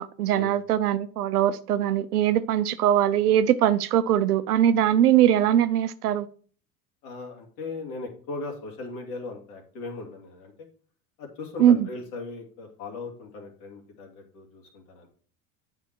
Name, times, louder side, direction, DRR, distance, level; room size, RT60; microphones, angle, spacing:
voice 1, 0.0-6.3 11.6-11.9, right 10 dB, 90° right, 0.7 m, -21 dB
voice 2, 7.0-10.5 11.2-15.1, left 3 dB, 75° left, 2.7 m, -38 dB
8.8 x 5.7 x 4.6 m
hypercardioid pair, 75°, 45 cm